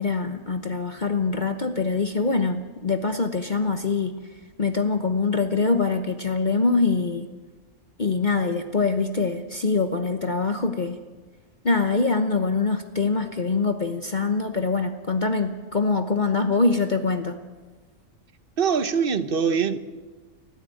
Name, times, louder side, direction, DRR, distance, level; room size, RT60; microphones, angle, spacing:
voice 1, 0.0-4.1 4.6-7.3 8.0-11.0 11.6-17.4, left 4 dB, 35° left, 1.0 m, -24 dB
voice 2, 18.6-19.8, right 6 dB, 45° right, 1.0 m, -23 dB
30.0 x 10.0 x 9.0 m
omnidirectional pair, 1.5 m